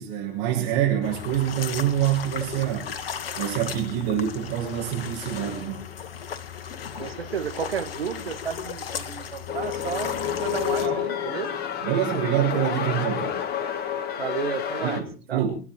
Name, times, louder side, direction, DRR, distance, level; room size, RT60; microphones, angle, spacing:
voice 1, 0.0-2.9 3.4-5.8 10.8-11.0 11.8-13.4 14.8-15.6, right 10 dB, 45° right, -2 dB, 6.9 m, -26 dB
sound 1, 1.0-10.9, left 7 dB, 65° left, 1.7 m, -36 dB
voice 2, 7.0-11.5 14.2-15.0 15.3-15.5, right 7 dB, 70° right, 8 dB, 2.2 m, -32 dB
sound 2, 9.5-15.0, left 9 dB, 30° left, 2.5 m, -29 dB
28.5 x 9.8 x 4.6 m, 0.36 s
figure-of-eight pair, 90°, 31 cm